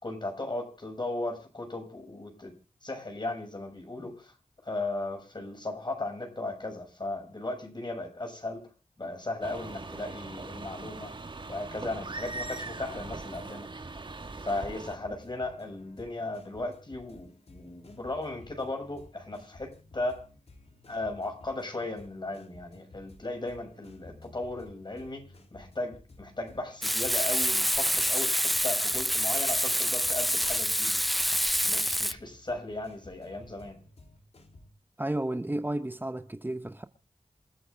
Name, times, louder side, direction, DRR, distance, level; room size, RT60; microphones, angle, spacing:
voice 1, 0.0-2.5 2.8-4.3 4.6-8.7 9.0-11.1 11.5-13.7 14.4-20.3 20.9-25.2 25.5-31.0 31.6-33.8, left 2 dB, 40° left, 6.5 m, -36 dB
sound 1, 9.4-15.0, right 3 dB, 45° right, 1.5 m, -40 dB
sound 2, 14.9-34.7, left 2 dB, 65° left, 3.3 m, -54 dB
Frying (food), 26.8-32.1, equal, ahead, 0.7 m, -27 dB
voice 2, 35.0-36.9, right 1 dB, 15° right, 1.1 m, -32 dB
27.5 x 9.2 x 3.5 m
cardioid pair, 50°, 11 cm